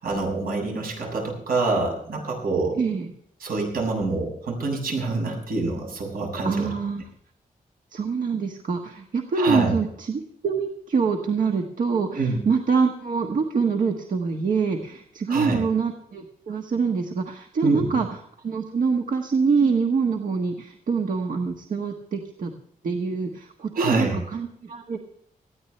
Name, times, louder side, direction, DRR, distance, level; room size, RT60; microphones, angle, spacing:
voice 1, 0.0-2.8 3.4-6.7 9.4-9.7 12.1-12.4 15.3-15.6 17.6-17.9 23.7-24.2, right 3 dB, 85° right, 0 dB, 7.4 m, -26 dB
voice 2, 2.8-3.1 6.4-7.0 7.9-18.1 18.4-22.5 22.8-25.0, right 5 dB, 65° right, 3 dB, 1.6 m, -25 dB
19.5 x 14.5 x 3.3 m, 0.69 s
wide cardioid pair, 160°, 15 cm